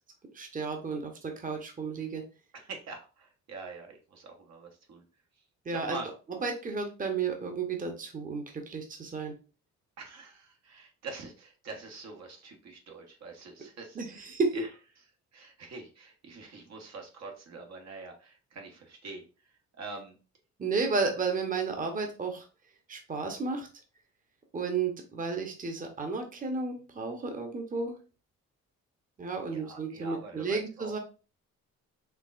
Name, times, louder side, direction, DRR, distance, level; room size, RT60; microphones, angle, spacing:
voice 1, 0.3-2.2 5.6-6.0 6.4-9.3 13.9-14.6 20.6-22.4 22.9-23.7 24.5-27.9 29.2-31.0, right 4 dB, 25° right, 4 dB, 0.9 m, -32 dB
voice 2, 2.5-5.0 5.7-6.1 10.0-14.7 15.3-20.2 29.5-30.9, right 3 dB, 60° right, 2 dB, 1.1 m, -45 dB
4.7 x 3.1 x 2.4 m, 0.34 s
cardioid pair, 90°, 30 cm